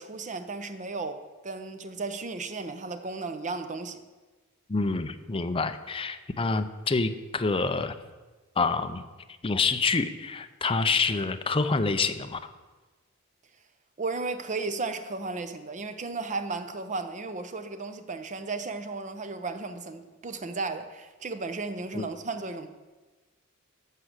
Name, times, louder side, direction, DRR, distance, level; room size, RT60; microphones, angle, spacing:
voice 1, 0.0-4.0 14.0-22.7, right 3 dB, 35° right, 0.8 m, -34 dB
voice 2, 4.7-8.0 8.6-9.0 9.4-12.4 21.9-22.0, left 4 dB, 25° left, 0.6 m, -27 dB
12.5 x 4.8 x 8.0 m
head